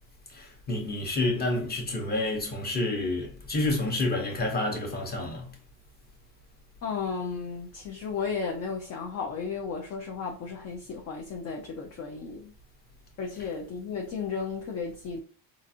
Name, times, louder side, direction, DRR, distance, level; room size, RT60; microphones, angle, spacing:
voice 1, 0.3-5.5, left 2 dB, 20° left, 1.0 m, -29 dB
voice 2, 6.8-12.5 13.2-15.2, left 5 dB, 35° left, 0.5 m, -34 dB
3.9 x 2.5 x 2.7 m
cardioid pair, 140°, 44 cm